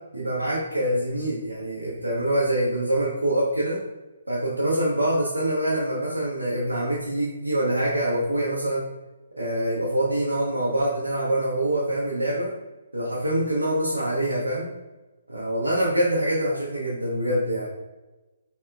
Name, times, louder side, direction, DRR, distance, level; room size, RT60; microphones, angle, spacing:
voice 1, 0.1-3.8 4.3-8.8 9.4-12.5 12.9-14.7 15.3-17.7, right 1 dB, 85° right, -6 dB, 0.9 m, -25 dB
4.4 x 3.4 x 2.3 m, 1.1 s
figure-of-eight pair, 135°, 0 cm